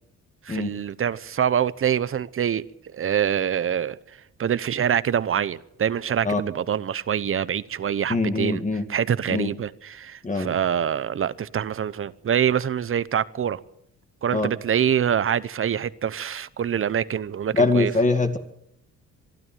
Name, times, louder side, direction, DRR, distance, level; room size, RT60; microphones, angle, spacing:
voice 1, 0.4-8.6 8.9-13.6 14.2-17.9, right 8 dB, 45° right, 0.9 m, -25 dB
voice 2, 8.1-8.8 9.3-9.5 10.2-10.5 14.3-14.5 17.5-18.4, left 3 dB, 25° left, 2.1 m, -22 dB
23.5 x 12.5 x 9.2 m
cardioid pair, 90°, 30 cm